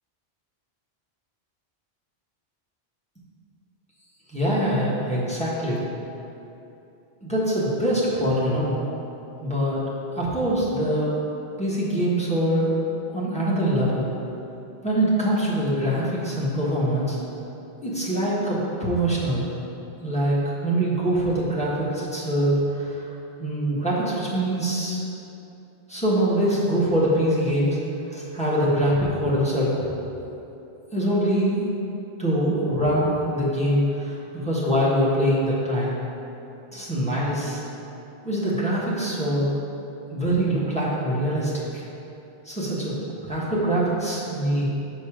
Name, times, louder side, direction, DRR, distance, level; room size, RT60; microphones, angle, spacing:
voice 1, 4.3-5.8 7.2-8.8 9.4-9.8 10.1-11.1 11.6-12.7 13.1-14.1 14.8-17.2 17.8-19.5 20.0-23.0 23.4-25.0 25.9-27.8 28.1-29.8 30.9-31.8 32.2-36.0 36.7-37.6 38.2-39.5 40.1-41.8 42.4-43.0 43.2-44.7, right 1 dB, 5° left, -8 dB, 1.3 m, -23 dB
6.2 x 5.3 x 5.0 m, 2.9 s
omnidirectional pair, 1.1 m